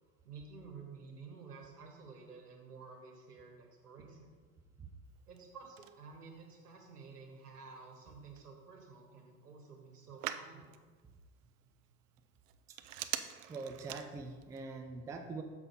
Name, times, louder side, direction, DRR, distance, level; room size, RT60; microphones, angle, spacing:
voice 1, 0.2-4.3 5.3-10.8, right 4 dB, 85° right, 1 dB, 1.6 m, -52 dB
Telephone, 5.0-14.6, right 12 dB, 60° right, 0.6 m, -48 dB
voice 2, 13.5-15.4, right 4 dB, 10° right, 4 dB, 0.3 m, -43 dB
6.7 x 5.8 x 4.1 m, 1.4 s
figure-of-eight pair, 80°, 45 cm